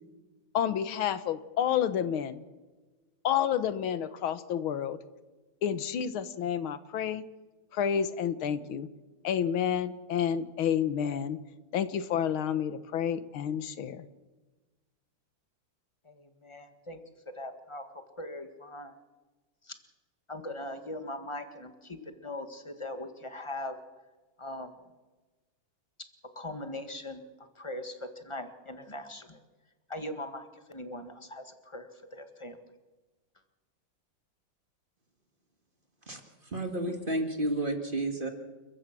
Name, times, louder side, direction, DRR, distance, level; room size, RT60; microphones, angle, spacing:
voice 1, 0.5-2.4 3.2-5.0 5.6-7.2 7.7-8.9 9.2-11.4 11.7-14.1, left 9 dB, 85° left, 13 dB, 1.9 m, -29 dB
voice 2, 16.0-17.0 17.3-17.8 18.2-18.9 19.7-19.8 20.3-23.8 24.4-24.7 26.3-27.2 27.6-29.4 29.9-32.6, left 1 dB, 15° left, 7 dB, 1.6 m, -40 dB
voice 3, 36.5-38.3, right 1 dB, 25° right, 4 dB, 2.4 m, -31 dB
29.5 x 14.5 x 6.1 m, 1.2 s
omnidirectional pair, 2.2 m